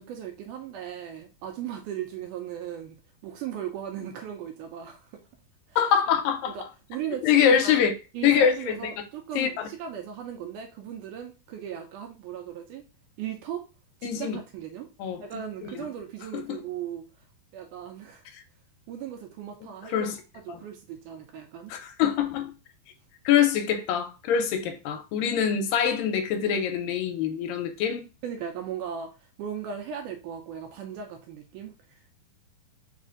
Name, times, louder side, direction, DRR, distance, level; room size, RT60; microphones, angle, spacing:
voice 1, 0.0-3.0 3.2-5.1 5.7-5.8 6.5-6.6 6.9-7.8 8.1-12.8 13.2-13.7 14.0-14.9 15.2-17.1 17.5-18.2 18.9-20.1 20.3-21.7 28.2-32.0, right 9 dB, 80° right, 1.9 m, -37 dB
voice 2, 5.8-6.6 7.2-7.9 8.2-8.9 9.4-9.7 14.0-14.4 15.0-15.2 15.6-15.9 16.3-16.6 19.9-20.2 20.5-20.6 21.7-22.5 23.3-28.0, left 8 dB, 85° left, 2.3 m, -24 dB
5.3 x 2.5 x 3.7 m
omnidirectional pair, 4.1 m